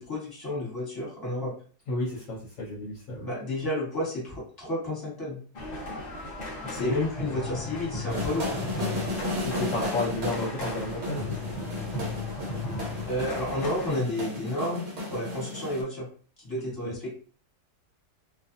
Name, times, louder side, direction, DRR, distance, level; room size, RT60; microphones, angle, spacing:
voice 1, 0.1-1.5 3.2-5.4 6.6-8.5 13.0-14.8 15.1-16.1 16.4-17.1, left 1 dB, 15° left, -6 dB, 1.2 m, -31 dB
voice 2, 1.9-3.3 6.7-6.9 7.3-7.4 9.4-11.6 16.8-16.9, left 2 dB, 65° left, -3 dB, 1.0 m, -32 dB
sound 1, 5.5-13.9, left 2 dB, 45° left, 0.6 m, -36 dB
sound 2, 8.1-15.8, left 1 dB, 55° right, 1.2 m, -34 dB
2.5 x 2.5 x 2.6 m, 0.42 s
omnidirectional pair, 1.6 m